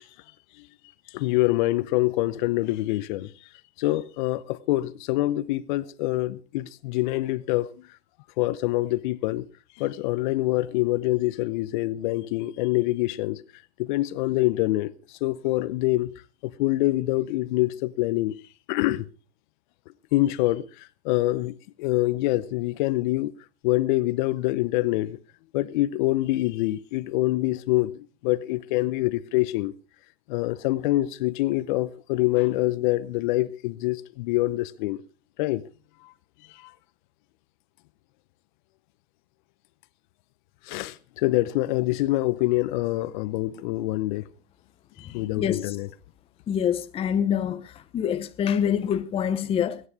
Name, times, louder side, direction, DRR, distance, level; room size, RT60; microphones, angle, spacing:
voice 1, 1.1-3.3 3.8-7.7 8.4-9.4 9.8-13.4 13.8-16.1 16.4-18.4 18.7-19.0 20.1-23.3 23.6-25.2 25.5-29.7 30.3-35.0 35.4-35.6 36.6-36.7 40.7-44.2 45.0-45.9, left 17 dB, 50° left, 0.9 m, -25 dB
voice 2, 45.4-45.8 46.5-49.8, left 8 dB, 20° left, 0.8 m, -26 dB
21.0 x 9.7 x 4.8 m
hypercardioid pair, 125°, 31 cm